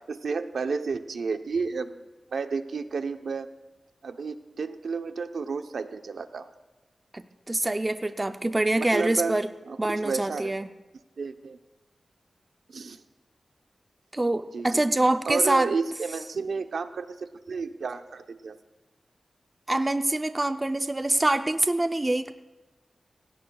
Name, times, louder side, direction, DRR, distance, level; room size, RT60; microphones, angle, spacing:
voice 1, 0.1-3.5 4.0-6.5 8.8-9.3 9.7-10.5 11.2-11.6 12.7-13.0 14.5-14.8 15.3-18.6, right 4 dB, 80° right, 7 dB, 0.8 m, -31 dB
voice 2, 7.1-9.5 9.8-10.7 14.1-15.7 19.7-22.3, right 2 dB, 20° right, 8 dB, 0.5 m, -25 dB
27.5 x 17.0 x 2.3 m, 1.1 s
wide cardioid pair, 150°, 0 cm